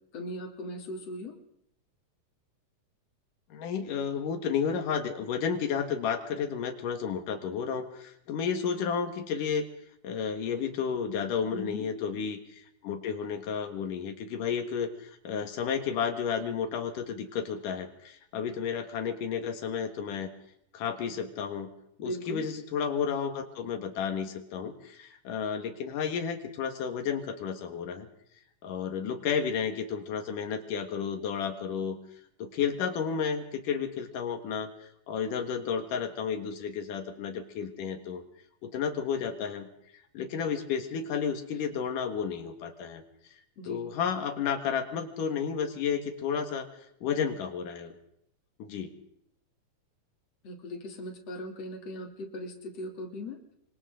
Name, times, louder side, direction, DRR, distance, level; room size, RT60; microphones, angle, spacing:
voice 1, 0.1-1.4 11.5-11.9 22.0-22.4 43.6-43.9 50.4-53.4, left 1 dB, 55° left, 2 dB, 4.0 m, -38 dB
voice 2, 3.5-9.7 10.0-20.3 20.7-21.7 22.0-28.1 28.6-32.0 32.4-38.2 38.6-43.0 43.3-46.7 47.0-47.9 48.6-48.9, left 7 dB, 90° left, 6 dB, 3.3 m, -32 dB
27.5 x 25.5 x 3.8 m, 0.74 s
omnidirectional pair, 3.6 m